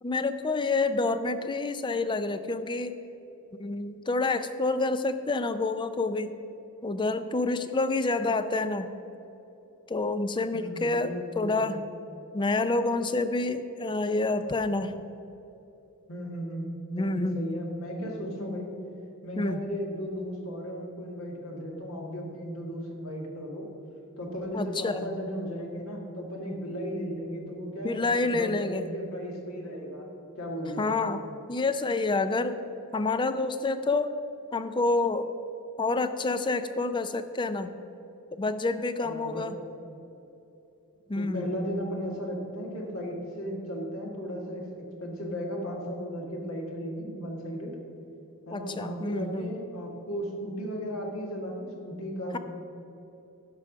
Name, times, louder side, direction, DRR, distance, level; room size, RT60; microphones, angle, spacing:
voice 1, 0.0-2.9 3.6-6.3 6.8-8.9 9.9-11.9 12.3-15.0 16.9-17.4 18.4-18.6 19.4-19.6 24.5-25.1 27.8-28.9 30.8-31.2 31.5-32.6 32.9-34.1 34.5-35.3 35.8-37.7 38.3-39.5 41.1-41.5 48.5-49.5, left 3 dB, 20° left, 11 dB, 0.4 m, -28 dB
voice 2, 10.5-11.7 16.1-18.8 19.2-23.7 24.2-30.1 30.4-30.9 39.0-39.5 41.2-47.8 48.5-52.4, equal, 65° left, -1 dB, 1.9 m, -35 dB
12.0 x 4.8 x 6.0 m, 2.9 s
head